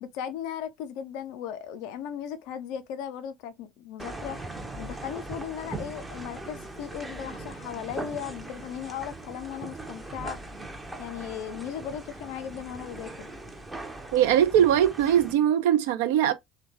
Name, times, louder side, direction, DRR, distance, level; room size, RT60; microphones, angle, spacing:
voice 1, 0.0-4.4 4.8-10.4 11.0-13.3, left 9 dB, 60° left, 0.4 m, -37 dB
sound 1, 4.0-15.3, right 2 dB, 10° right, 0.5 m, -40 dB
voice 2, 14.1-16.3, right 10 dB, 65° right, 0.4 m, -21 dB
3.0 x 2.2 x 2.5 m
figure-of-eight pair, 65°, 0 cm